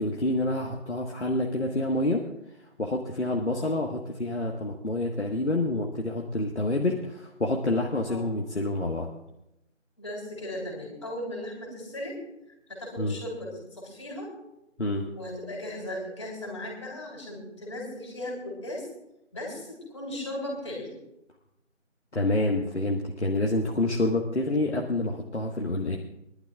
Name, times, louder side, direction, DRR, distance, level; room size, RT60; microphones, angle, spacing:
voice 1, 0.0-2.2 2.8-9.1 13.0-13.2 14.8-15.1 22.1-26.0, left 2 dB, 65° left, 0 dB, 1.5 m, -27 dB
voice 2, 10.0-12.2 12.7-14.3 15.1-18.9 19.3-21.0, left 1 dB, 25° left, -3 dB, 3.5 m, -37 dB
24.0 x 12.0 x 2.4 m, 0.85 s
figure-of-eight pair, 170°, 38 cm